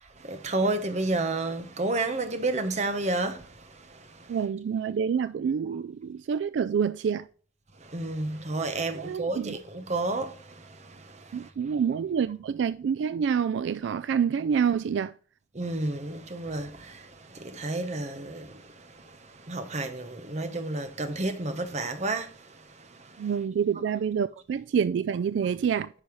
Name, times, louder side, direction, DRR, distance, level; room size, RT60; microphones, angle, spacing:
voice 1, 0.2-4.4 7.8-11.5 15.5-22.6 23.0-23.3, right 2 dB, 35° right, 1.0 m, -31 dB
voice 2, 4.3-7.2 9.0-9.6 11.3-15.1 23.2-25.9, right 7 dB, 75° right, 0.3 m, -27 dB
9.7 x 5.6 x 3.0 m
head